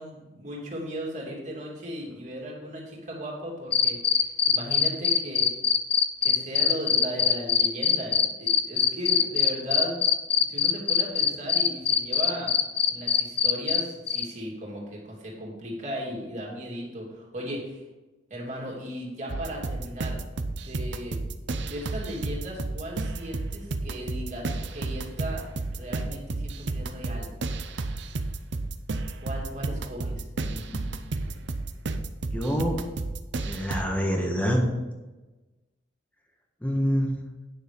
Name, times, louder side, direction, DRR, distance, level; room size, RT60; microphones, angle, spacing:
voice 1, 0.0-5.5 6.2-10.0 10.5-12.5 12.9-17.8 18.3-20.2 20.5-21.2 21.6-25.4 25.7-27.3 29.2-30.3, equal, 35° right, -2 dB, 2.8 m, -36 dB
sound 1, 3.7-13.8 14.1-14.2, left 8 dB, 30° left, 0.5 m, -22 dB
sound 2, 19.3-33.8, right 2 dB, 60° right, 0.6 m, -32 dB
voice 2, 30.4-30.8 32.3-32.8 33.5-34.6 36.6-37.1, equal, 10° left, 1 dB, 1.4 m, -26 dB
9.7 x 6.6 x 5.2 m, 1.2 s
head